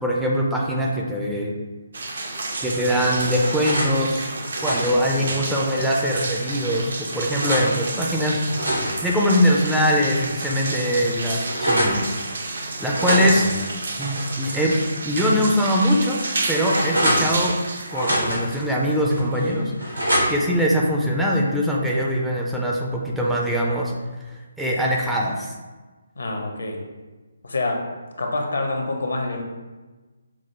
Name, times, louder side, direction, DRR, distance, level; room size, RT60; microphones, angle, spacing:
voice 1, 0.0-1.5 2.6-4.3 4.6-12.5 12.8-13.4 14.0-14.8 15.0-16.2 16.5-17.5 17.9-23.9 24.3-25.5, equal, ahead, -4 dB, 0.4 m, -22 dB
sound 1, 1.9-19.2, right 2 dB, 55° right, 0.5 m, -31 dB
sound 2, 2.7-3.9 4.4-6.0 6.6-7.7 8.3-10.0 10.4-10.5 10.8-12.0 12.9-14.7 15.1-15.2 15.8-17.6 17.9-18.6 19.1-20.6, equal, 80° right, 1.2 m, -27 dB
voice 2, 13.2-13.6 17.1-17.3 26.2-26.8 27.4-27.8 28.2-29.4, left 2 dB, 65° left, 3 dB, 0.6 m, -27 dB
6.0 x 2.0 x 3.1 m, 1.3 s
figure-of-eight pair, 140°, 0 cm